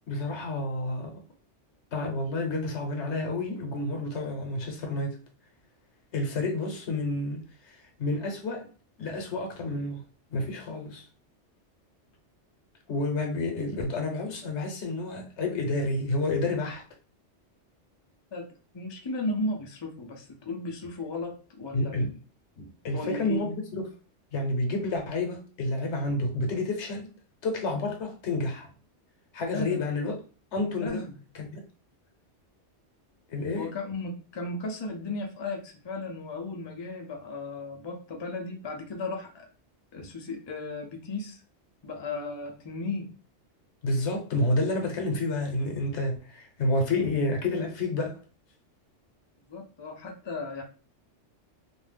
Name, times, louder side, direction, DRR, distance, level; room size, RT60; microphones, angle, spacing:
voice 1, 0.1-1.2 1.9-5.2 6.1-8.7 9.0-10.0 10.3-11.0 12.9-16.8 21.7-22.1 22.6-23.8 24.3-27.1 27.4-28.7 29.3-30.2 30.5-31.1 31.3-31.5 33.3-33.7 40.0-40.1 43.8-48.1, left 2 dB, 70° left, 1.0 m, -29 dB
voice 2, 18.7-22.0 22.9-23.4 29.5-29.9 30.8-31.2 33.6-39.5 39.9-41.4 41.8-43.1 49.5-50.6, left 2 dB, 40° left, 0.4 m, -35 dB
2.6 x 2.1 x 3.3 m
omnidirectional pair, 1.2 m